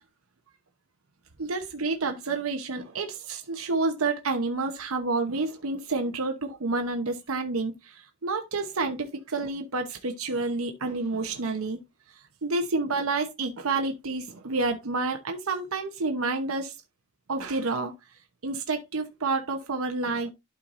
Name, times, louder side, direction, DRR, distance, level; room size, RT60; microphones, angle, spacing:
voice 1, 1.4-11.8 12.4-16.7 17.3-17.9 18.4-20.3, right 3 dB, 80° right, 0.9 m, -29 dB
11.5 x 4.5 x 2.6 m
head